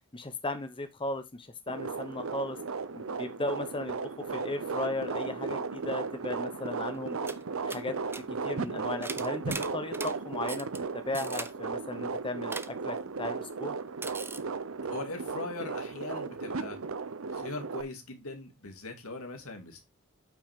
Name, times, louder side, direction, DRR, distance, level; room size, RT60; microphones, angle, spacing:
voice 1, 0.1-2.6 2.9-7.2 7.6-8.0 8.4-10.7 10.9-13.8, left 2 dB, 25° left, 8 dB, 0.9 m, -36 dB
sound 1, 1.7-17.8, right 4 dB, 65° right, 0.7 m, -36 dB
sound 2, 6.9-7.0 7.3-7.4 7.7-7.8 8.1-8.2 9.0-10.1 10.5-10.8 11.1-11.5 12.5-12.7 14.0-14.4, right 3 dB, 10° right, 0.7 m, -39 dB
voice 2, 14.9-16.8 17.3-19.8, left 3 dB, 85° left, 4 dB, 2.4 m, -40 dB
8.8 x 6.0 x 3.6 m, 0.23 s
head